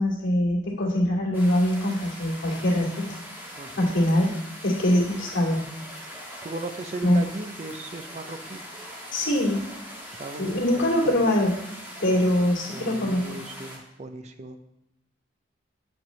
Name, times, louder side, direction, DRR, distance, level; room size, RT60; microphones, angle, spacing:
voice 1, 0.0-3.2 3.8-4.4 4.6-5.6 7.0-7.2 9.1-9.6 10.4-11.5 12.0-13.2, left 1 dB, 80° left, -4 dB, 2.3 m, -23 dB
sound 1, 1.3-13.8, equal, 10° right, 1.4 m, -41 dB
voice 2, 6.4-8.6 10.1-10.6 11.1-11.2 12.1-12.2 12.7-14.6, right 2 dB, 35° right, 8 dB, 0.5 m, -37 dB
7.3 x 7.1 x 3.1 m, 0.83 s
head